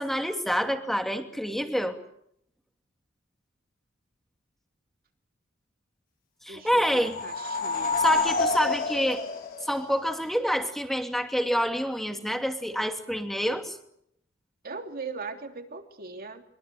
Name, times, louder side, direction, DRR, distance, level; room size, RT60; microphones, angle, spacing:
voice 1, 0.0-2.0 6.4-7.2 8.0-9.2 9.6-13.8, equal, ahead, 5 dB, 2.7 m, -27 dB
voice 2, 6.5-8.0 14.6-16.4, right 4 dB, 50° right, 5 dB, 3.2 m, -39 dB
sound 1, 6.8-10.3, left 4 dB, 50° left, 4.7 m, -29 dB
23.5 x 23.5 x 8.1 m, 0.70 s
head